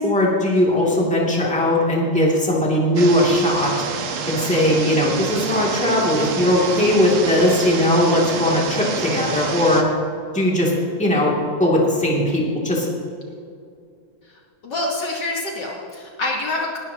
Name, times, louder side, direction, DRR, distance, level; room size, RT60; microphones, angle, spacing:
voice 1, 0.0-3.7 4.2-9.9 10.3-12.9, left 1 dB, 5° left, -4 dB, 2.2 m, -19 dB
sound 1, 3.0-9.8, right 5 dB, 85° right, 2.0 m, -28 dB
voice 2, 14.3-16.8, left 2 dB, 55° left, -1 dB, 1.8 m, -27 dB
20.0 x 12.0 x 2.9 m, 2.4 s
omnidirectional pair, 2.3 m